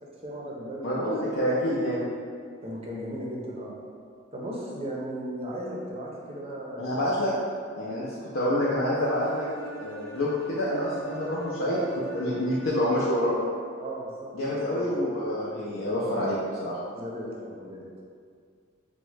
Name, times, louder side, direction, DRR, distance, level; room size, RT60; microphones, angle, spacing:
voice 1, 0.0-1.1 2.6-3.7 4.3-7.1 11.7-11.9 13.8-15.0 16.9-17.8, right 1 dB, 30° right, -4 dB, 0.5 m, -36 dB
voice 2, 0.8-2.0 6.8-7.3 7.7-8.1 8.3-9.5 9.8-11.8 12.1-13.4 14.3-16.8, left 1 dB, 65° left, -7 dB, 0.5 m, -27 dB
Bowed string instrument, 9.0-13.0, right 2 dB, 90° right, 0.6 m, -45 dB
3.5 x 2.1 x 3.2 m, 2.1 s
head